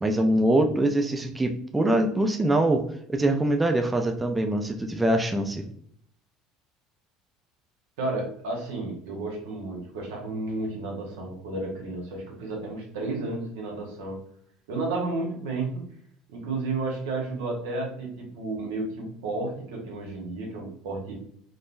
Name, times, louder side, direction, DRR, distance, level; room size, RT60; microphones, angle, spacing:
voice 1, 0.0-2.8 3.1-5.6, right 1 dB, 10° right, 4 dB, 0.4 m, -23 dB
voice 2, 8.0-14.2 14.7-15.9 16.3-21.1, right 2 dB, 85° right, 0 dB, 1.0 m, -32 dB
3.6 x 2.0 x 2.5 m, 0.65 s
supercardioid pair, 110°, 0 cm